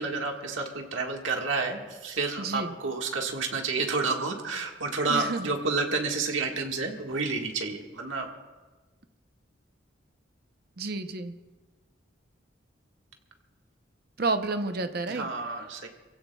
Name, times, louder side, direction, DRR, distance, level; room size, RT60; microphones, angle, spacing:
voice 1, 0.0-8.3 15.1-15.9, right 3 dB, 90° right, 2 dB, 1.7 m, -30 dB
voice 2, 2.4-2.7 5.1-5.5 10.8-11.4 14.2-15.3, right 3 dB, 55° right, 8 dB, 0.7 m, -30 dB
27.5 x 16.0 x 2.3 m, 1.3 s
head